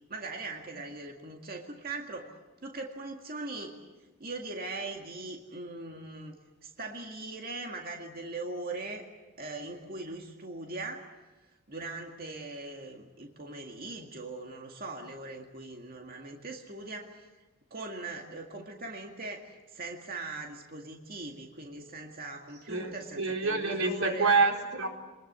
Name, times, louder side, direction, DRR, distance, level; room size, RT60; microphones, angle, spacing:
voice 1, 0.1-2.3 2.6-3.8 4.2-6.3 6.6-9.1 9.4-11.1 11.7-17.3 17.7-24.3, right 3 dB, 45° right, 2 dB, 2.1 m, -40 dB
voice 2, 22.7-24.9, right 4 dB, 90° right, 2 dB, 4.4 m, -27 dB
27.0 x 21.0 x 8.3 m, 1.1 s
head